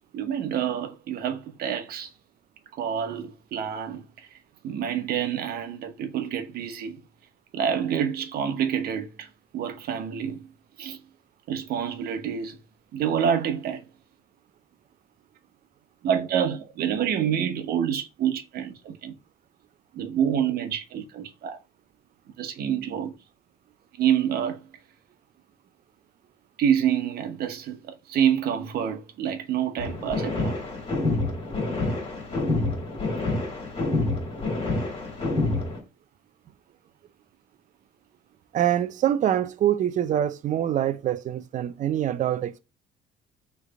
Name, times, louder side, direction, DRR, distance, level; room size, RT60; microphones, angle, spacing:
voice 1, 0.1-2.1 2.8-4.4 4.6-7.0 7.5-9.3 9.5-10.5 10.8-11.0 11.5-12.6 12.9-13.8 16.0-19.1 19.9-21.6 22.4-23.1 24.0-24.6 26.6-30.6, right 8 dB, 65° right, 1.0 m, -27 dB
sound 1, 29.8-35.8, left 2 dB, 35° left, 2.1 m, -27 dB
voice 2, 38.5-42.6, right 11 dB, 50° right, 0.5 m, -25 dB
3.3 x 3.2 x 4.8 m
cardioid pair, 110°, 17 cm